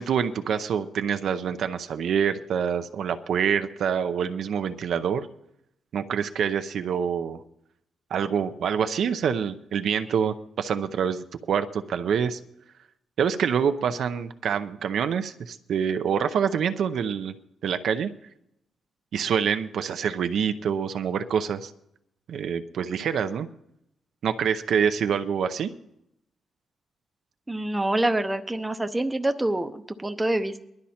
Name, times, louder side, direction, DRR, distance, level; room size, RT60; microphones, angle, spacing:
voice 1, 0.0-5.3 5.9-7.4 8.1-12.4 13.2-17.3 17.6-18.1 19.1-21.7 22.3-23.5 24.2-25.7, right 7 dB, 60° right, 9 dB, 0.6 m, -26 dB
voice 2, 27.5-30.6, right 1 dB, 10° right, 7 dB, 0.7 m, -26 dB
20.5 x 12.0 x 4.3 m, 0.82 s
cardioid pair, 160°, 0 cm